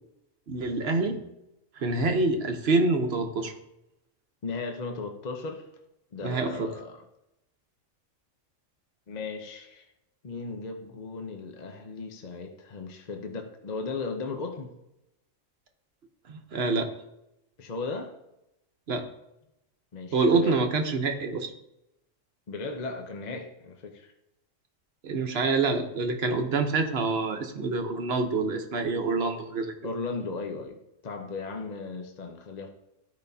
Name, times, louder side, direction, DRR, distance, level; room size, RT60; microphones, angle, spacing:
voice 1, 0.5-1.2 1.8-3.5 6.2-6.7 16.3-16.9 18.9-19.1 20.1-21.5 25.0-29.7, right 3 dB, 55° right, 5 dB, 1.1 m, -26 dB
voice 2, 4.4-5.7 6.1-7.0 9.1-9.8 10.2-14.7 17.6-18.1 19.9-20.6 22.5-24.1 29.8-30.8 31.0-32.7, left 4 dB, 40° left, 4 dB, 0.7 m, -36 dB
14.0 x 5.1 x 2.7 m, 0.88 s
omnidirectional pair, 1.3 m